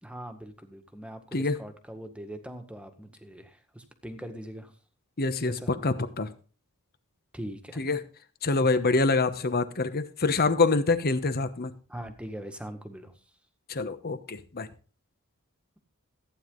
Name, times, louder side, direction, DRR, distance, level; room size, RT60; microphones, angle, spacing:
voice 1, 0.0-4.7 5.4-5.7 7.3-7.8 11.9-13.1, right 1 dB, 5° right, 1.7 m, -41 dB
voice 2, 5.2-6.3 7.8-8.0 8.4-11.7 13.7-14.7, left 3 dB, 45° left, 1.1 m, -26 dB
15.0 x 9.5 x 3.9 m
head